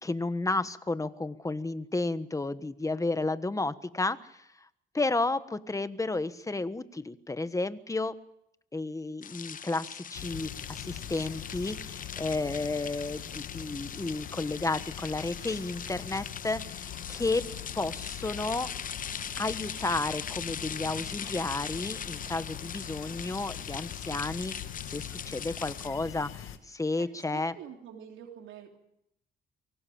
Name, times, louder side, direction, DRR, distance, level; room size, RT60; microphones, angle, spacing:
voice 1, 0.0-4.5 4.9-8.2 8.7-17.5 17.7-18.7 19.4-24.5 24.8-27.5, left 2 dB, 15° left, 13 dB, 1.3 m, -32 dB
sound 1, 9.2-25.9, left 7 dB, 45° left, 0.8 m, -41 dB
sound 2, 10.1-26.6, left 10 dB, 85° left, 1.9 m, -43 dB
voice 2, 27.0-28.8, right 8 dB, 80° right, 2 dB, 3.5 m, -46 dB
24.0 x 17.5 x 8.7 m, 0.81 s
cardioid pair, 90°, 20 cm